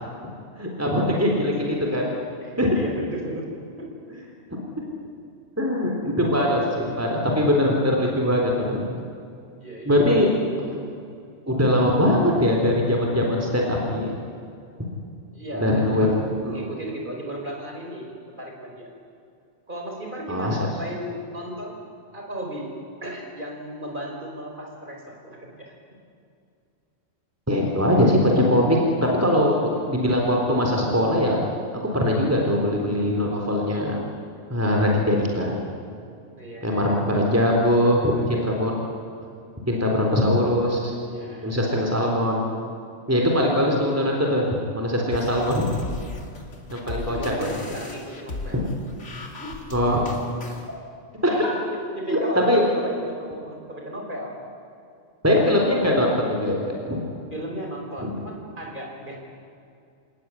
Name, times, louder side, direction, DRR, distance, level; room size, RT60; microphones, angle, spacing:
voice 1, 0.6-2.1 2.6-2.8 4.8-4.9 5.6-8.8 9.9-10.3 10.6-10.8 11.5-14.1 15.5-16.1 16.4-16.6 20.3-20.6 27.5-31.4 31.9-34.0 34.5-35.5 36.6-38.8 39.6-40.9 41.4-42.4 43.1-45.7 46.7-47.5 49.7-50.0 51.2-51.5 52.1-52.6 55.2-57.0 58.0-58.1, left 1 dB, 10° right, -1 dB, 3.8 m, -21 dB
voice 2, 1.1-1.7 2.4-3.5 3.8-3.9 9.6-10.2 15.3-18.9 19.7-21.8 22.1-22.7 23.0-25.7 29.6-29.8 36.4-37.2 37.8-38.6 41.0-41.6 43.1-43.4 46.9-48.6 49.4-49.5 51.1-54.4 57.3-59.2, equal, 40° right, 0 dB, 5.0 m, -35 dB
sound 1, 45.1-50.7, left 3 dB, 65° left, 2.7 m, -37 dB
27.5 x 19.0 x 9.9 m, 2.4 s
omnidirectional pair, 1.3 m